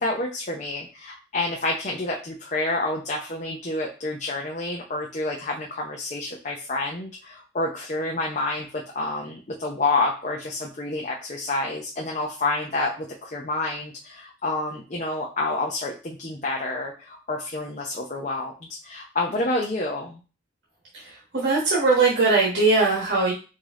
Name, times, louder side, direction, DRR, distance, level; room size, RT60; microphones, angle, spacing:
voice 1, 0.0-20.2, left 2 dB, 40° left, -1 dB, 0.6 m, -28 dB
voice 2, 21.0-23.3, right 3 dB, 80° right, -4 dB, 1.3 m, -20 dB
4.9 x 2.8 x 3.7 m, 0.34 s
head